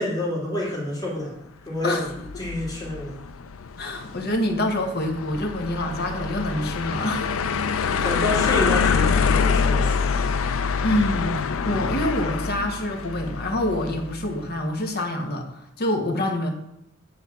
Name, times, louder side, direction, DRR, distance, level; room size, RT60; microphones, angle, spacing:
voice 1, 0.0-1.3 1.6-2.1 2.4-3.2 8.0-10.1, left 1 dB, 20° left, -5 dB, 3.0 m, -28 dB
sound 1, 2.1-14.3, left 6 dB, 90° left, 0.5 m, -25 dB
voice 2, 3.8-7.5 10.8-16.5, left 1 dB, 50° left, 3 dB, 1.3 m, -26 dB
9.7 x 4.5 x 5.9 m, 0.79 s
head